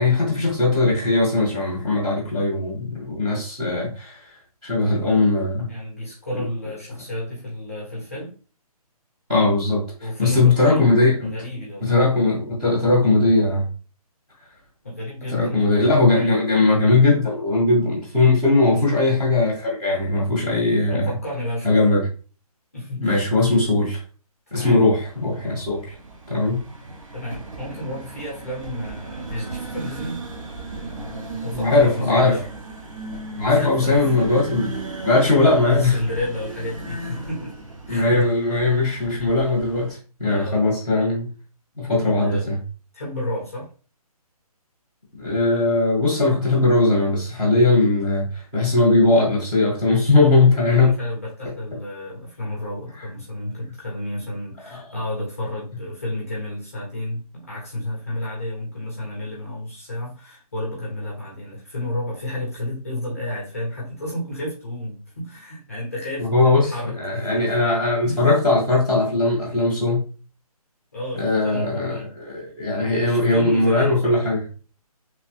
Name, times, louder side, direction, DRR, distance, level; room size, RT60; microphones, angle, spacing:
voice 1, 0.0-4.2 4.6-5.7 9.3-9.8 10.2-11.3 11.8-13.7 15.3-21.1 21.6-22.0 23.0-24.0 24.5-25.9 26.3-26.6 31.5-32.4 33.4-34.7 35.0-36.0 37.9-41.3 41.8-42.6 45.2-50.9 66.2-66.7 67.0-70.0 71.2-74.4, left 2 dB, 10° right, 0.7 m, -19 dB
voice 2, 5.7-8.3 10.0-10.9 11.2-12.0 14.8-15.7 16.1-16.4 18.6-18.9 20.9-21.8 22.7-23.3 24.5-24.9 27.1-30.2 30.8-32.5 33.5-34.3 35.6-37.6 37.9-38.1 40.2-40.6 42.1-42.4 42.9-43.7 50.3-67.6 68.0-68.3 70.9-72.2 73.0-74.2, left 1 dB, 25° left, 0.6 m, -31 dB
sound 1, 25.0-39.9, right 3 dB, 55° right, 0.7 m, -36 dB
2.9 x 2.0 x 3.1 m
hypercardioid pair, 180°, 20 cm